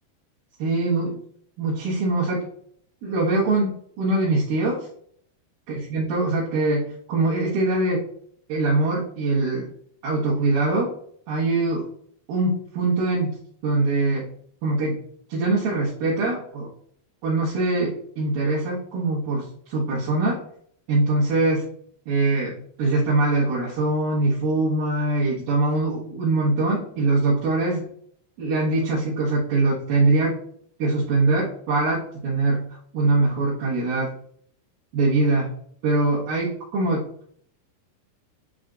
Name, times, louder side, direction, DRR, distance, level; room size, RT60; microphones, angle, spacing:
voice 1, 0.6-1.2 1.6-2.4 3.0-4.9 5.7-8.1 8.5-9.7 10.0-10.9 11.3-11.9 12.3-13.4 13.6-14.2 14.6-15.0 15.3-16.7 17.2-20.4 20.9-21.7 22.1-27.9 28.4-30.4 30.8-32.6 32.9-34.1 34.9-35.5 35.8-37.1, right 2 dB, 80° right, -8 dB, 3.3 m, -23 dB
9.2 x 4.3 x 2.5 m, 0.62 s
omnidirectional pair, 4.3 m